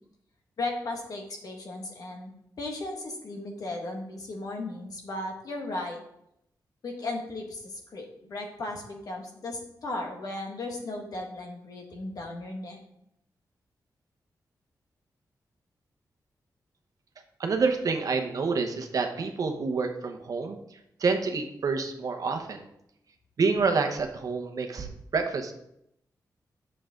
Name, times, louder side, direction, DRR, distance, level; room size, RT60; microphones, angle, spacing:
voice 1, 0.6-6.0 6.8-12.8, left 2 dB, 60° left, 2 dB, 1.8 m, -36 dB
voice 2, 17.4-20.6 21.0-22.6 23.4-24.9 25.1-25.5, right 4 dB, 55° right, 5 dB, 1.1 m, -27 dB
10.5 x 6.6 x 3.8 m, 0.77 s
wide cardioid pair, 175°, 7 cm